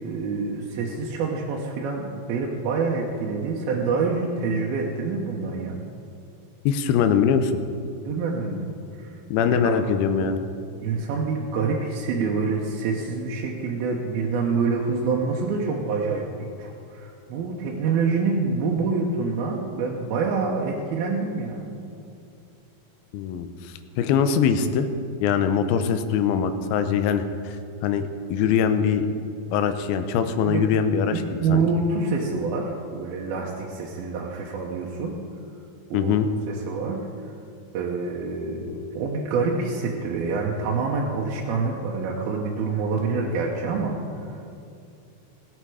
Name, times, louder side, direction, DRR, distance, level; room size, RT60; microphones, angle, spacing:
voice 1, 0.0-5.8 8.1-8.7 8.9-9.2 10.8-21.7 28.7-28.8 30.4-30.7 31.1-35.2 35.9-36.2 36.5-37.0 37.7-44.4, right 4 dB, 90° right, -2 dB, 2.8 m, -26 dB
voice 2, 6.7-7.6 9.3-10.4 23.1-24.9 25.2-27.6 27.8-29.1 29.5-31.2 31.5-31.6 35.9-36.3, left 7 dB, 85° left, 9 dB, 2.5 m, -22 dB
17.0 x 8.9 x 4.8 m, 2.5 s
omnidirectional pair, 4.2 m